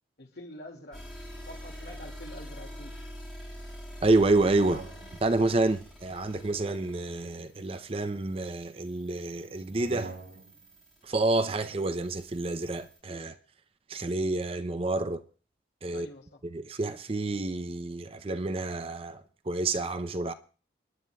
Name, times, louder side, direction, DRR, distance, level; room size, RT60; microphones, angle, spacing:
voice 1, 0.2-1.0 1.5-2.9 15.9-16.4, left 1 dB, 70° left, 2.1 m, -46 dB
sound 1, 0.9-13.0, equal, 5° left, 5.5 m, -46 dB
voice 2, 4.0-4.8 5.2-10.1 11.0-13.4 13.9-15.2 15.8-16.1 16.4-20.3, right 2 dB, 30° right, 0.5 m, -28 dB
iron hinge creak, 4.3-5.4 6.7-8.3 9.6-10.6, right 2 dB, 80° right, 2.5 m, -45 dB
29.0 x 10.5 x 2.3 m
head